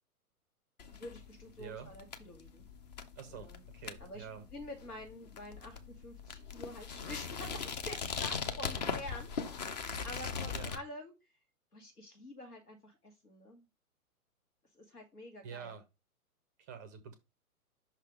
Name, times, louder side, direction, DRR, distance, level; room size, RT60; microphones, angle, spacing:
sound 1, 0.8-10.8, left 6 dB, 30° left, 0.6 m, -40 dB
voice 1, 0.9-2.6 3.3-3.6 4.0-11.3 11.7-13.6 14.7-15.8, left 1 dB, 85° left, 2 dB, 1.9 m, -48 dB
voice 2, 1.6-1.9 3.2-4.4 8.8-8.9 10.0-10.1 10.5-10.7 15.4-15.8 16.6-17.1, right 7 dB, 15° right, 9 dB, 0.5 m, -47 dB
5.6 x 3.3 x 5.1 m, 0.25 s
figure-of-eight pair, 120°, 45 cm